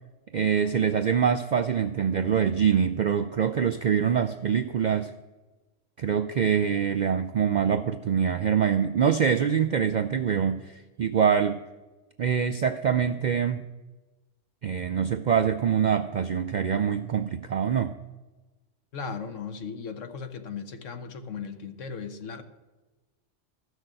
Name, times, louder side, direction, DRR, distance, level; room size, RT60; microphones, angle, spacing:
voice 1, 0.3-5.1 6.0-11.6 12.2-13.6 14.6-17.9, right 7 dB, 65° right, 8 dB, 0.4 m, -24 dB
voice 2, 18.9-22.4, left 5 dB, 85° left, 8 dB, 1.3 m, -37 dB
13.0 x 6.4 x 7.6 m, 1.2 s
omnidirectional pair, 1.3 m